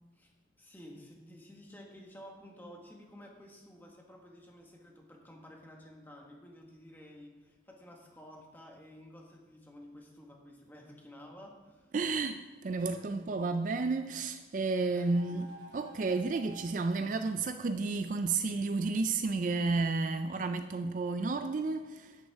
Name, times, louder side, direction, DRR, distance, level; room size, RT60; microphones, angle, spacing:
voice 1, 0.6-11.9 12.8-13.6 14.9-15.5, left 1 dB, 10° left, 1.4 m, -52 dB
sound 1, 11.5-12.3 14.7-16.6, right 2 dB, 75° right, 2.5 m, -53 dB
voice 2, 11.9-22.2, right 3 dB, 45° right, 0.4 m, -32 dB
10.5 x 9.6 x 3.5 m
head